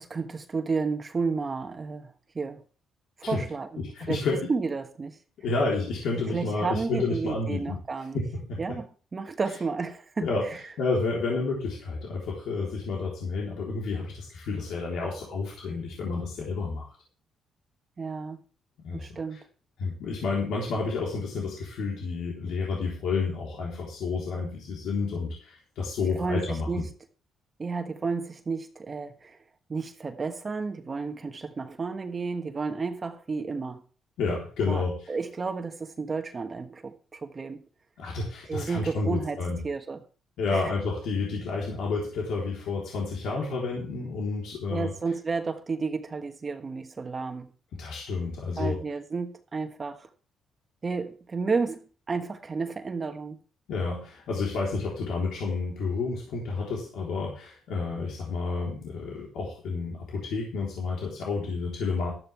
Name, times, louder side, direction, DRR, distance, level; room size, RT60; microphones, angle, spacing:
voice 1, 0.0-2.6 3.2-3.8 4.1-4.2 4.5-5.2 6.3-8.2 8.6-8.9 9.1-10.6 18.0-18.4 18.9-19.4 26.1-26.9 27.6-29.4 29.7-33.8 34.7-37.6 38.5-40.0 40.5-40.7 44.7-47.5 48.6-50.1 50.8-53.4, right 4 dB, 35° right, 6 dB, 1.4 m, -32 dB
voice 2, 3.8-4.5 5.4-7.8 8.1-8.8 10.2-16.9 18.8-19.4 19.8-26.8 34.2-35.1 38.0-39.6 40.4-44.9 47.8-48.8 53.7-62.1, left 4 dB, 80° left, -3 dB, 3.7 m, -30 dB
12.5 x 11.5 x 3.5 m, 0.38 s
cardioid pair, 90°, 0 cm